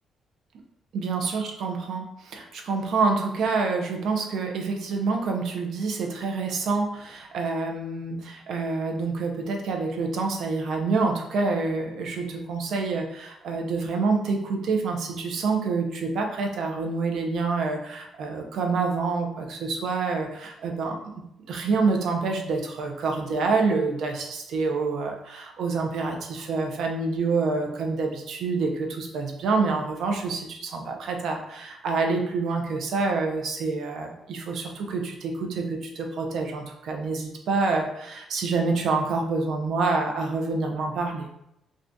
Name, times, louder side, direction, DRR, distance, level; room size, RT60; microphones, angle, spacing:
voice 1, 0.9-21.0 21.5-41.3, right 4 dB, 70° right, 2 dB, 0.6 m, -27 dB
2.6 x 2.4 x 3.4 m, 0.82 s
cardioid pair, 90°, 0 cm